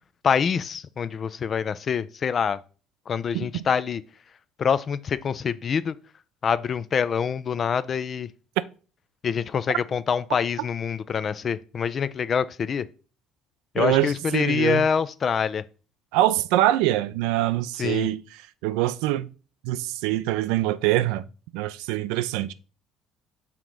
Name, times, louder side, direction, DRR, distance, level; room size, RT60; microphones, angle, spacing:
voice 1, 0.2-2.6 3.1-4.0 4.6-5.9 6.4-8.3 9.2-12.9 13.7-15.6 17.8-18.1, left 6 dB, 45° left, 0.5 m, -25 dB
voice 2, 13.8-14.9 16.1-19.3 19.6-21.3 21.5-22.5, right 15 dB, 80° right, 0.4 m, -24 dB
5.8 x 3.9 x 4.6 m
hypercardioid pair, 70°, 0 cm